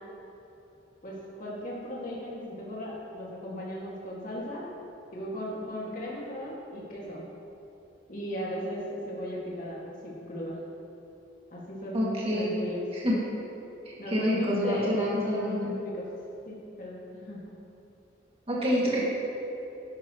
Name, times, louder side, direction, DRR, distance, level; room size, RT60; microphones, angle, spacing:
voice 1, 1.0-4.7 5.1-7.2 8.1-10.6 11.5-12.8 14.0-16.2 16.5-17.4, equal, 45° left, -5 dB, 2.1 m, -37 dB
voice 2, 11.9-12.5 12.9-13.1 13.9-15.7 18.5-19.0, equal, 30° right, -6 dB, 2.1 m, -27 dB
11.5 x 11.0 x 3.1 m, 2.9 s
head